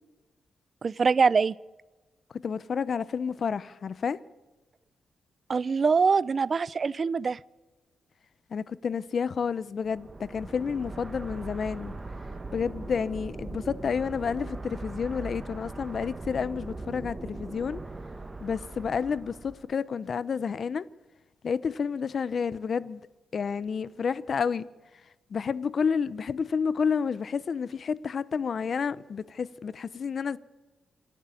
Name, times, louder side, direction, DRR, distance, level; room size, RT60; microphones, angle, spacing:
voice 1, 0.8-1.5 5.5-7.4, right 5 dB, 40° right, 0.6 m, -23 dB
voice 2, 2.4-4.2 8.5-11.9 12.5-17.8 18.4-20.9 21.4-23.0 23.3-24.7 25.3-30.4, left 6 dB, 50° left, 0.8 m, -30 dB
sound 1, 9.9-19.7, right 2 dB, 25° right, 1.7 m, -40 dB
27.0 x 11.5 x 9.2 m
cardioid pair, 110°, 0 cm